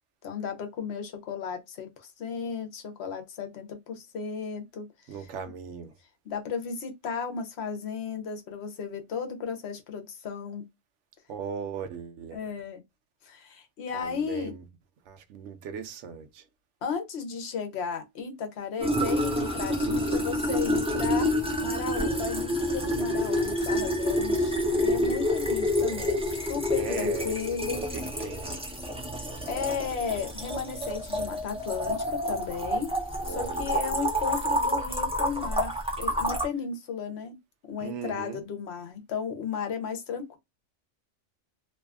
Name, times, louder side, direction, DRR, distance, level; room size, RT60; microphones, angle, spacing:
voice 1, 0.2-5.3 6.2-10.6 12.3-12.8 13.2-14.5 16.8-21.3 21.6-27.8 29.5-32.9 33.3-37.4 37.6-40.4, left 6 dB, 65° left, 0.9 m, -34 dB
voice 2, 5.1-5.9 11.3-12.4 13.9-14.6 15.1-16.4 26.8-27.3 27.9-28.6 33.2-33.8 37.8-38.4, right 6 dB, 80° right, 0.9 m, -38 dB
sound 1, 18.8-36.5, equal, 10° right, 0.4 m, -28 dB
2.6 x 2.3 x 2.3 m
omnidirectional pair, 1.2 m